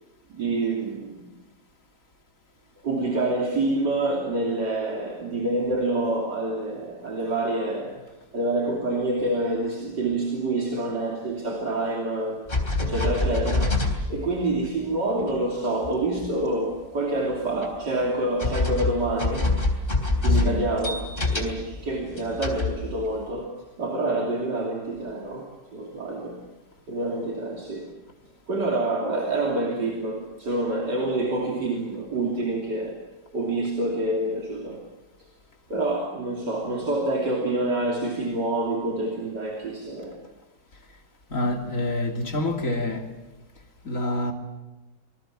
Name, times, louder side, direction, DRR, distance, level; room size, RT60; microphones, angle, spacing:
voice 1, 0.3-1.3 2.8-8.1 8.3-13.8 14.1-19.5 20.2-21.0 21.3-26.4 26.9-27.9 28.5-33.0 33.3-34.8 35.7-40.2, right 2 dB, 70° right, 3.6 m, -27 dB
sound 1, 12.5-14.7 15.2-15.3 15.8-16.3 17.6-17.7 18.4-21.7 22.1-23.3, left 2 dB, 30° left, 3.7 m, -25 dB
voice 2, 20.3-20.6 41.3-43.1 43.8-44.3, left 1 dB, 45° left, 3.4 m, -27 dB
26.5 x 20.5 x 7.5 m
omnidirectional pair, 1.9 m